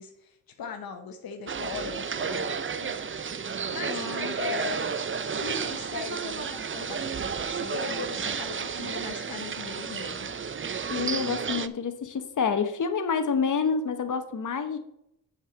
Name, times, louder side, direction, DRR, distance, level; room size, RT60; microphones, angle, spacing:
voice 1, 0.0-2.5 2.8-3.0 3.4-4.1 4.4-4.9 5.3-10.4, left 6 dB, 80° left, 5 dB, 1.1 m, -39 dB
sound 1, 1.5-11.7, right 6 dB, 35° right, 0.7 m, -32 dB
voice 2, 3.9-4.3 10.9-14.8, left 6 dB, 60° left, 8 dB, 1.3 m, -28 dB
7.2 x 5.4 x 7.1 m, 0.79 s
cardioid pair, 60°, 35 cm